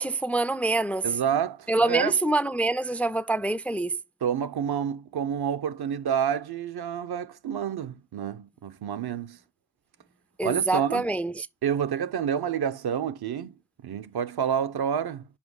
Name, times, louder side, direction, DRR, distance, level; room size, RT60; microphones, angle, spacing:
voice 1, 0.0-1.1 1.7-4.0 10.4-11.5, right 2 dB, 5° left, 0.4 m, -25 dB
voice 2, 1.0-2.1 4.2-9.4 10.4-11.1 11.6-13.6 13.8-15.2, right 8 dB, 60° right, 0.8 m, -28 dB
5.8 x 5.3 x 6.2 m
cardioid pair, 75°, 44 cm